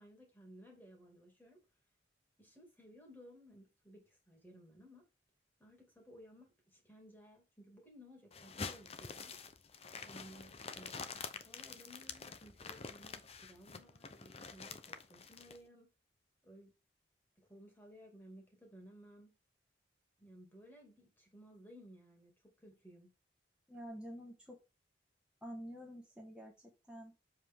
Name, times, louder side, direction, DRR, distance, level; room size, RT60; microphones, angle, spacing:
voice 1, 0.0-1.6 2.4-5.0 5.6-9.4 10.0-15.9 16.4-16.7 17.4-19.3 20.2-23.1, equal, 10° left, 2.3 m, -58 dB
bag noise, 8.3-15.6, left 5 dB, 35° left, 0.7 m, -47 dB
voice 2, 23.7-24.6 25.4-26.5 26.9-27.1, equal, 5° right, 1.5 m, -48 dB
7.3 x 4.8 x 3.6 m
head